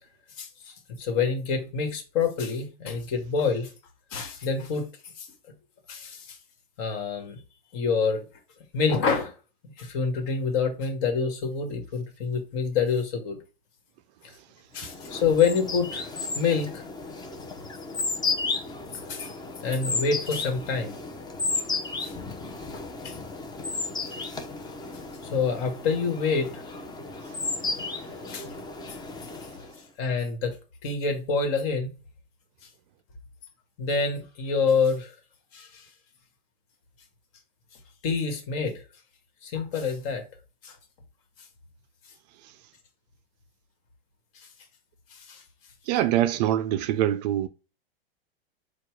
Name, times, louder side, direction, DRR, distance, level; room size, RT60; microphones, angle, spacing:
voice 1, 0.4-3.7 4.1-4.8 5.2-5.3 5.9-6.4 6.8-7.4 7.7-8.2 8.7-9.3 9.8-13.4 14.7-16.8 19.1-19.3 19.6-21.0 22.0-22.1 22.7-23.2 25.3-26.6 28.3-28.5 29.4-29.5 30.0-30.5 30.8-31.9 33.8-35.1 35.5-35.9 38.0-38.7 39.4-40.2 40.6-40.7 44.3-44.5 45.1-45.4, left 5 dB, 50° left, 1.5 m, -27 dB
sound 1, 14.8-29.8, left 3 dB, 15° left, 0.7 m, -33 dB
voice 2, 45.9-47.5, right 12 dB, 45° right, 0.4 m, -24 dB
4.5 x 2.4 x 4.6 m
hypercardioid pair, 110°, 31 cm